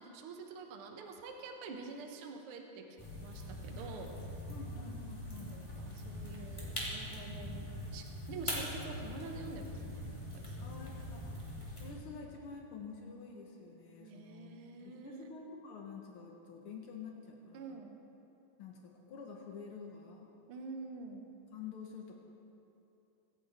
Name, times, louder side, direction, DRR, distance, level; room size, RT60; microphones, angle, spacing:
voice 1, 0.0-2.8 3.2-4.1 5.4-10.6 14.0-15.3 17.5-18.0 20.5-21.2, right 4 dB, 70° right, 2 dB, 1.3 m, -47 dB
sound 1, 3.0-11.9, left 1 dB, 10° left, 2.3 m, -42 dB
voice 2, 4.5-5.6 10.6-11.3 11.8-17.8 18.6-20.3 21.5-22.2, left 5 dB, 85° left, 0 dB, 1.2 m, -48 dB
24.5 x 9.4 x 4.4 m, 2.8 s
omnidirectional pair, 4.2 m